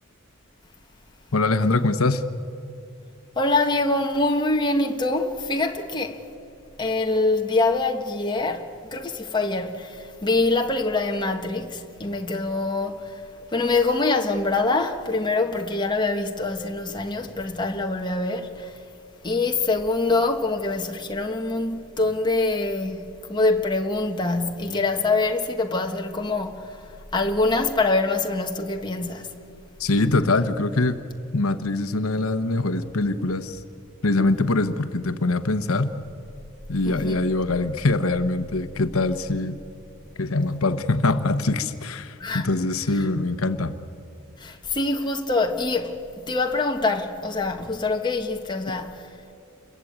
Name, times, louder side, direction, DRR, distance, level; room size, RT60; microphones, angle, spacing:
voice 1, 1.3-2.2 29.8-31.0 31.3-33.6 34.0-35.9 36.7-39.6 40.2-43.7, left 2 dB, 75° left, 1.0 m, -23 dB
voice 2, 3.3-6.2 6.8-13.2 13.5-18.8 19.2-29.3 36.8-37.2 42.2-42.5 43.0-43.1 44.4-49.1, left 3 dB, 20° left, 1.4 m, -25 dB
28.5 x 22.5 x 8.8 m
head